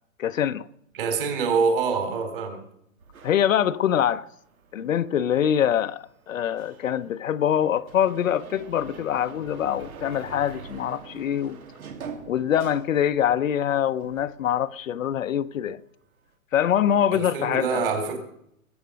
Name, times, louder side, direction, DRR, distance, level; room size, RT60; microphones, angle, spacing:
voice 1, 0.2-0.7 3.2-4.3 4.7-11.6 12.3-15.8 16.5-17.8, left 9 dB, 65° left, 0.7 m, -24 dB
voice 2, 0.9-2.6 17.1-18.2, right 5 dB, 40° right, 3.4 m, -25 dB
sound 1, 3.0-13.6 13.9-15.2, right 5 dB, 85° right, 2.8 m, -45 dB
20.5 x 8.0 x 6.3 m
hypercardioid pair, 170°, 42 cm